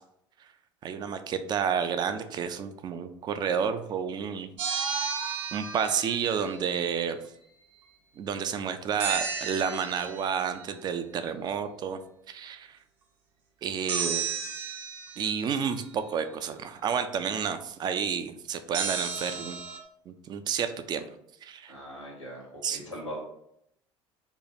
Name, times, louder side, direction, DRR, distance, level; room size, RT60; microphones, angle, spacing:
voice 1, 0.8-4.5 5.5-7.2 8.2-12.0 12.3-12.8 13.6-14.2 15.2-19.6 20.1-21.0 21.4-21.7 22.6-22.8, right 7 dB, 25° right, 9 dB, 0.3 m, -30 dB
sound 1, 4.6-6.7 9.0-10.5 13.9-15.6 18.7-19.8, right 6 dB, 55° right, 0.8 m, -33 dB
voice 2, 21.7-23.2, equal, 90° left, -3 dB, 1.2 m, -40 dB
3.0 x 2.2 x 4.1 m, 0.75 s
figure-of-eight pair, 65°, 16 cm